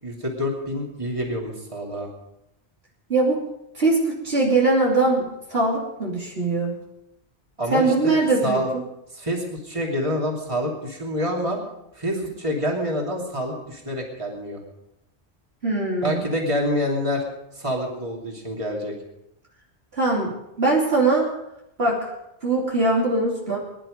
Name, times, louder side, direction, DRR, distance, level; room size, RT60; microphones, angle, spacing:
voice 1, 0.0-2.1 7.6-8.7 9.1-11.6 11.9-14.6 16.0-17.2 17.5-18.9, equal, 25° right, -1 dB, 2.9 m, -27 dB
voice 2, 3.7-6.7 7.7-8.6 15.6-16.3 19.9-20.3 20.6-21.3 21.8-22.0 22.4-23.6, right 2 dB, 65° right, -3 dB, 3.3 m, -21 dB
21.0 x 11.0 x 5.2 m, 0.84 s
omnidirectional pair, 1.2 m